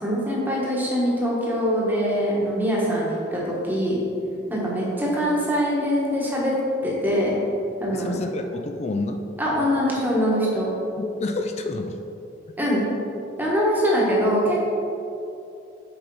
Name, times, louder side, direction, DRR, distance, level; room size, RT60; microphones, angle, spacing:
voice 1, 0.0-4.0 4.5-6.5 6.8-7.3 7.8-8.1 9.4-10.7 12.6-12.8 13.4-14.6, equal, 10° right, -5 dB, 1.3 m, -23 dB
voice 2, 7.9-9.2 11.0-12.0, left 2 dB, 35° left, 5 dB, 0.4 m, -29 dB
6.2 x 4.9 x 4.7 m, 2.8 s
head